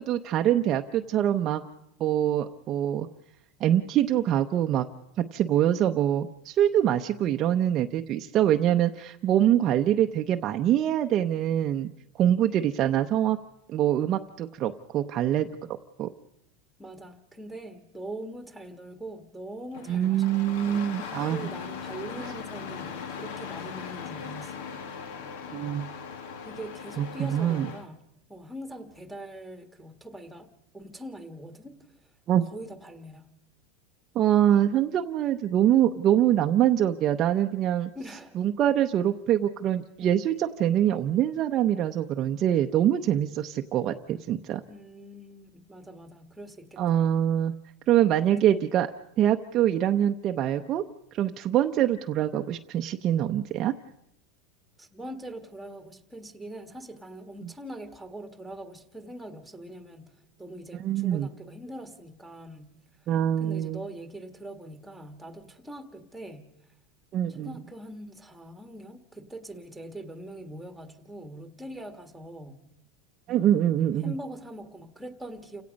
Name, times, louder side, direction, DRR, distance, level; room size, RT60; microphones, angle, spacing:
voice 1, 0.0-1.6 2.0-3.1 3.6-4.9 5.2-11.9 12.2-13.4 13.7-15.5 16.0-16.1 19.9-21.5 25.5-25.9 27.0-27.7 32.3-32.5 34.1-37.9 38.4-44.6 46.8-47.5 47.9-48.9 49.2-50.8 51.1-53.7 60.8-61.3 63.1-63.8 67.1-67.5 73.3-74.1, right 11 dB, 35° right, 5 dB, 0.7 m, -24 dB
voice 2, 16.8-20.4 21.2-24.6 26.4-28.0 28.3-31.8 32.5-33.3 37.9-38.4 40.0-40.1 44.7-47.1 48.2-48.6 54.8-62.7 63.4-66.5 67.3-72.6 74.0-75.6, right 1 dB, ahead, 7 dB, 1.6 m, -42 dB
Engine starting, 19.7-27.9, left 6 dB, 70° left, 1.9 m, -39 dB
29.5 x 17.0 x 5.2 m, 0.78 s
supercardioid pair, 155°, 0 cm